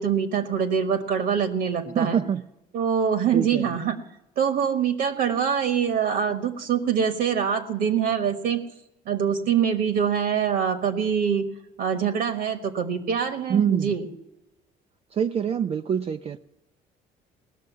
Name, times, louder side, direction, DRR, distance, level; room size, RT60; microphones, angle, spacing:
voice 1, 0.0-2.2 2.7-4.0 4.4-8.6 9.0-11.5 11.8-14.1, right 7 dB, 70° right, 7 dB, 1.3 m, -24 dB
voice 2, 1.9-2.4 3.3-3.7 13.5-13.9 15.1-16.4, right 8 dB, 35° right, 7 dB, 0.4 m, -25 dB
18.5 x 6.6 x 9.3 m, 0.92 s
cardioid pair, 110°, 17 cm